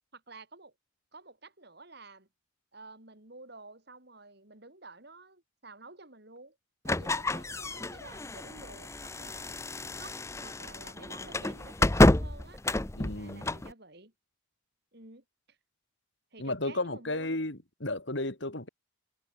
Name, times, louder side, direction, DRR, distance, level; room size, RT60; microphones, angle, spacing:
voice 1, 0.1-0.7 1.1-2.3 2.7-6.6 6.9-9.5 10.0-12.6 13.1-14.1 14.9-15.2 16.3-17.5, right 3 dB, 50° right, 3.8 m, -51 dB
sound 1, 6.8-13.7, left 1 dB, 15° left, 0.6 m, -29 dB
voice 2, 12.9-13.5 16.4-18.7, left 2 dB, 60° left, 3.2 m, -33 dB
head